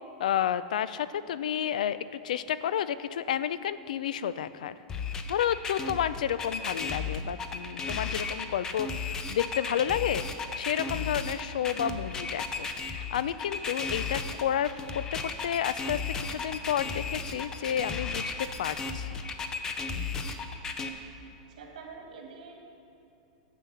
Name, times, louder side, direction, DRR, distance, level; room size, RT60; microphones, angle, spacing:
voice 1, 0.2-2.0 2.2-4.8 5.3-10.3 10.5-19.2, left 9 dB, 80° left, 15 dB, 0.4 m, -31 dB
sound 1, 4.9-20.9, left 4 dB, 15° left, 0.4 m, -34 dB
sound 2, 11.8-12.0 12.4-12.6 13.0-13.2 13.5-13.7 14.1-14.3 14.6-14.8 15.3-15.4 15.8-16.0 16.4-16.5 17.0-17.2 17.5-17.7 18.1-18.2 18.6-18.8 19.2-19.3 19.8-20.0 20.3-20.5 20.9-21.1, right 1 dB, 10° right, 1.4 m, -53 dB
voice 2, 21.4-22.6, right 5 dB, 75° right, 1 dB, 2.0 m, -46 dB
10.0 x 7.5 x 5.6 m, 2.7 s
supercardioid pair, 175°, 4 cm